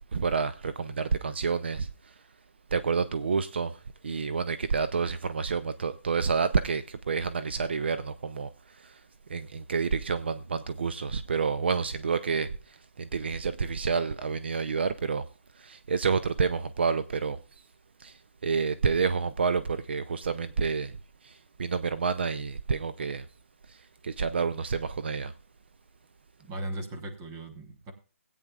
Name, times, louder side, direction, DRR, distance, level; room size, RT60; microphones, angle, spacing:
voice 1, 0.1-2.1 2.7-9.0 9.3-15.3 15.5-17.7 18.0-23.3 23.7-25.3, right 5 dB, 50° right, 0.5 m, -29 dB
voice 2, 26.4-27.9, right 1 dB, 15° right, 1.0 m, -37 dB
17.5 x 8.8 x 2.4 m
hypercardioid pair, 175°, 8 cm